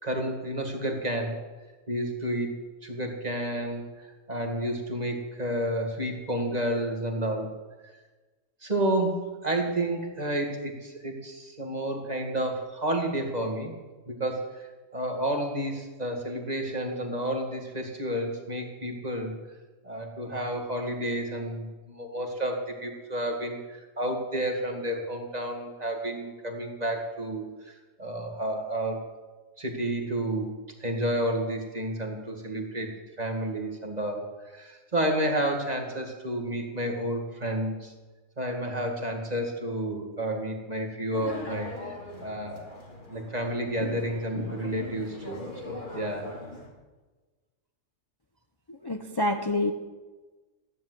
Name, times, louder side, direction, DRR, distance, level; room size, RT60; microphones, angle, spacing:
voice 1, 0.0-1.4 1.9-7.5 7.8-7.9 8.6-13.7 14.1-19.4 19.8-29.1 29.6-30.5 30.8-37.9 38.4-42.8 43.1-46.3, right 1 dB, 30° right, 2 dB, 2.3 m, -31 dB
sound 1, 41.1-46.7, left 1 dB, 35° left, 3.4 m, -40 dB
voice 2, 48.7-49.7, left 1 dB, 20° left, 4 dB, 0.9 m, -27 dB
15.0 x 11.0 x 7.8 m, 1.3 s
omnidirectional pair, 1.4 m